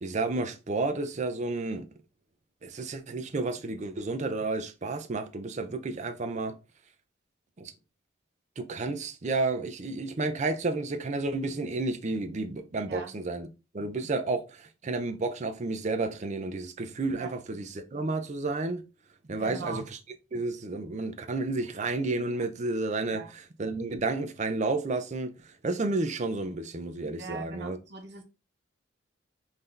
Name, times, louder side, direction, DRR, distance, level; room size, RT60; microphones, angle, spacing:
voice 1, 0.0-1.8 2.6-6.6 7.6-7.7 8.6-13.5 13.7-18.9 19.3-19.8 20.3-23.2 23.6-27.8, right 3 dB, 35° right, 0.5 m, -31 dB
voice 2, 19.4-19.9 23.1-23.4 27.2-28.2, right 4 dB, 55° right, 0.9 m, -40 dB
3.8 x 2.7 x 3.2 m
head